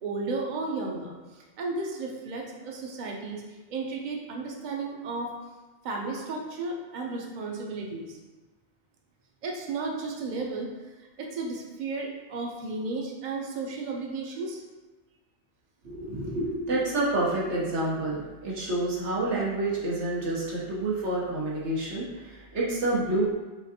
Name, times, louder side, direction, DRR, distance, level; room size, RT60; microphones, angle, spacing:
voice 1, 0.0-3.4 3.7-5.3 5.8-8.2 9.4-10.7 11.2-14.6, right 3 dB, 50° right, 0 dB, 0.7 m, -33 dB
voice 2, 15.8-23.3, right 2 dB, 85° right, -6 dB, 1.3 m, -28 dB
5.7 x 2.5 x 2.8 m, 1.2 s
omnidirectional pair, 1.2 m